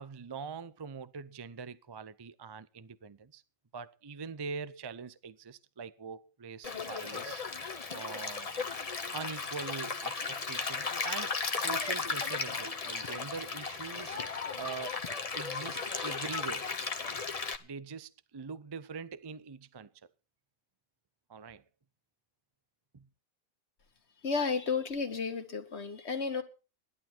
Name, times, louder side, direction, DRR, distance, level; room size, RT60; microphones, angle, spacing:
voice 1, 0.0-3.4 3.7-7.4 7.9-8.5 9.1-14.2 14.6-15.0 15.3-16.8 17.6-19.9 21.3-21.6 22.9-23.0, right 5 dB, 35° right, 0.4 m, -43 dB
Stream, 6.6-17.6, left 4 dB, 30° left, 1.0 m, -35 dB
voice 2, 24.2-26.4, left 5 dB, 50° left, 1.8 m, -32 dB
16.5 x 11.5 x 4.5 m
omnidirectional pair, 1.5 m